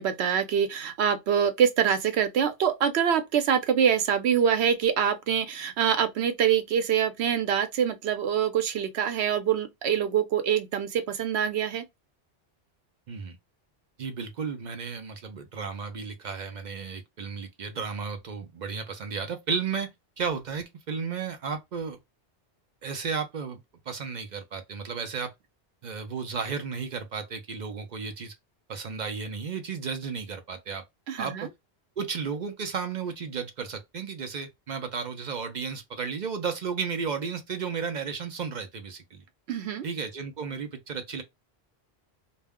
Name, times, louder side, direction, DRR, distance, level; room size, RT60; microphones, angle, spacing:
voice 1, 0.0-11.8 31.1-31.5 39.5-39.9, right 8 dB, 85° right, 0.9 m, -25 dB
voice 2, 14.0-19.9 20.2-22.0 22.8-23.6 23.9-25.3 25.8-28.3 28.7-30.8 31.2-31.5 32.0-39.2 39.8-41.2, right 5 dB, 55° right, 0.6 m, -33 dB
2.3 x 2.1 x 3.4 m
omnidirectional pair, 1.1 m